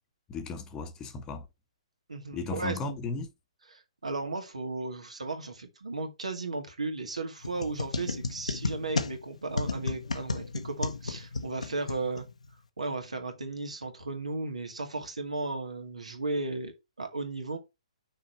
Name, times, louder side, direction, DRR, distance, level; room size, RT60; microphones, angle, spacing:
voice 1, 0.3-1.5 2.3-3.3, left 3 dB, 20° left, 1.1 m, -35 dB
voice 2, 2.1-2.8 3.7-12.3 12.8-17.6, right 3 dB, 80° right, 2.1 m, -35 dB
sound 1, 7.4-12.5, left 3 dB, 80° left, 1.1 m, -34 dB
6.2 x 4.8 x 4.5 m
figure-of-eight pair, 130°, 4 cm